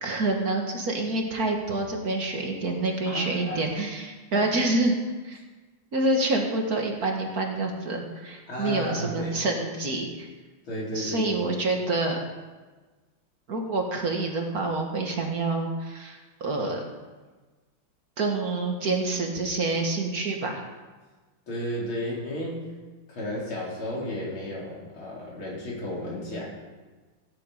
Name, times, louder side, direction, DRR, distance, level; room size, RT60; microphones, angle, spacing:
voice 1, 0.0-5.0 5.2-5.4 5.9-10.3 10.9-12.2 13.5-16.8 18.2-20.6, right 2 dB, 50° right, 2 dB, 2.0 m, -27 dB
voice 2, 3.1-3.6 4.3-4.5 8.5-9.4 10.6-11.6 21.5-22.7 23.1-26.4, left 1 dB, 90° left, -5 dB, 4.7 m, -33 dB
16.0 x 10.0 x 5.0 m, 1.3 s
omnidirectional pair, 2.2 m